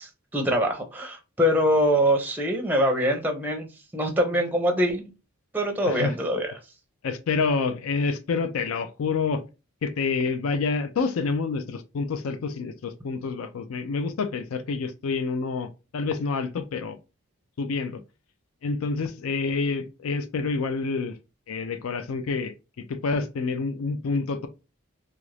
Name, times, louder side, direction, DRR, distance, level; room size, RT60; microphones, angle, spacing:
voice 1, 0.0-3.7 3.9-5.0 5.5-6.5, equal, 10° right, 0.6 m, -24 dB
voice 2, 7.0-9.4 9.8-17.0 17.6-18.0 18.6-21.2 21.5-22.5 22.9-24.5, left 4 dB, 70° left, 0.4 m, -28 dB
2.8 x 2.5 x 3.2 m
head